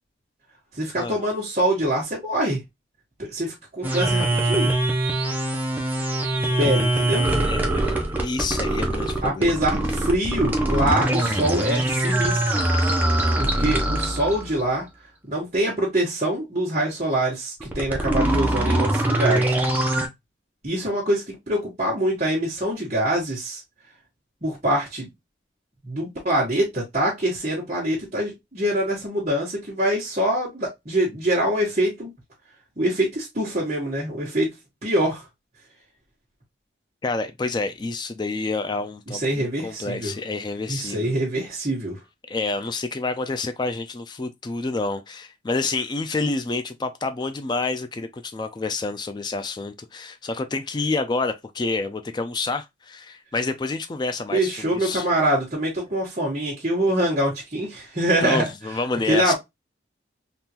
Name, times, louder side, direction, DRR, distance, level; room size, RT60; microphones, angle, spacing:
voice 1, 0.8-2.6 3.3-4.7 6.3-7.2 9.2-12.6 13.4-14.8 15.3-19.5 20.6-23.6 24.4-25.1 25.8-32.1 32.8-34.5 34.8-35.2 39.1-40.1 40.7-42.0 54.3-58.4 59.1-59.3, right 1 dB, 35° right, 1.2 m, -24 dB
sound 1, 3.8-14.6 17.6-20.1, right 1 dB, 10° right, 0.6 m, -23 dB
voice 2, 7.5-8.0 8.2-9.6 13.6-13.8 37.0-41.1 42.3-55.1 58.2-59.3, left 3 dB, 25° left, 0.3 m, -28 dB
3.6 x 2.5 x 2.8 m
head